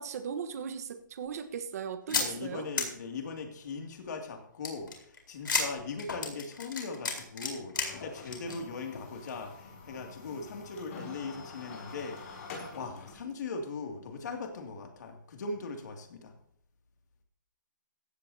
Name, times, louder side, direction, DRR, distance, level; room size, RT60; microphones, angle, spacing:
voice 1, 0.0-2.7, right 7 dB, 50° right, 7 dB, 1.3 m, -38 dB
sound 1, 2.1-2.3 2.7-2.8 4.6-7.9 8.2-8.6 8.9-9.0 9.3-9.4, left 4 dB, 90° left, 4.3 m, -32 dB
voice 2, 2.1-16.3, left 4 dB, 60° left, 3 dB, 2.5 m, -40 dB
sound 2, 7.7-13.1, left 4 dB, 40° left, 6.1 m, -46 dB
16.5 x 14.5 x 2.8 m, 0.70 s
hypercardioid pair, 160°, 11 cm